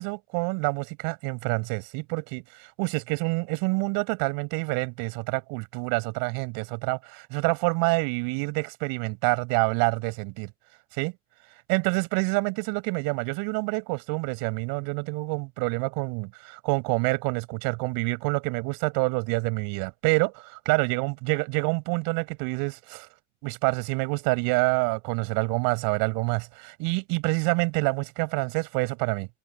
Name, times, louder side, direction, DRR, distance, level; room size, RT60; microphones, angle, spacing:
voice 1, 0.0-2.4 2.8-10.5 11.0-11.1 11.7-23.1 23.4-29.3, right 31 dB, 70° right, 7.7 m, -27 dB
hypercardioid pair, 70°, 37 cm